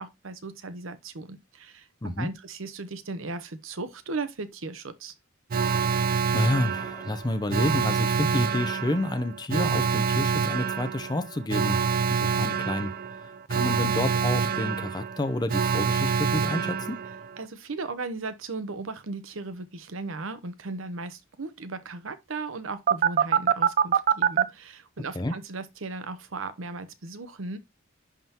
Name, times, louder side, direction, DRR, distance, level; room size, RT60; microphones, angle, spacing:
voice 1, 0.0-5.1 17.4-27.6, right 3 dB, 80° right, 0.9 m, -37 dB
voice 2, 2.0-2.3 5.7-6.0 6.3-11.8 12.1-12.9 13.2-17.0 25.1-25.3, left 1 dB, 20° left, 0.6 m, -29 dB
Alarm, 5.5-17.4 22.9-24.4, right 6 dB, 45° right, 0.4 m, -26 dB
11.0 x 3.7 x 2.9 m
head